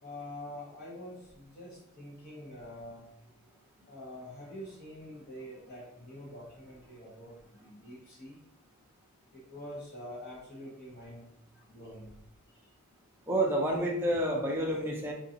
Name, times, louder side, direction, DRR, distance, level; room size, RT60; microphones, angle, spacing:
voice 1, 0.0-3.0 3.9-8.4 9.5-11.2 11.7-12.1, left 1 dB, 40° left, -7 dB, 0.9 m, -46 dB
voice 2, 13.3-15.1, right 1 dB, 10° right, -1 dB, 0.5 m, -29 dB
3.8 x 2.5 x 2.8 m, 0.75 s
head